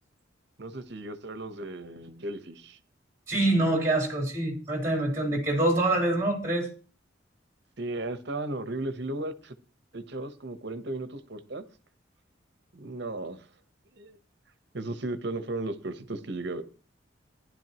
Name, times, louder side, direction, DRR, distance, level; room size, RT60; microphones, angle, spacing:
voice 1, 0.6-2.8 7.8-9.5 9.9-11.6 12.7-13.5 13.9-14.2 14.7-16.6, right 2 dB, 60° right, 11 dB, 1.0 m, -35 dB
voice 2, 3.3-6.7, right 2 dB, 15° right, 0 dB, 3.7 m, -25 dB
15.5 x 11.5 x 3.0 m, 0.36 s
head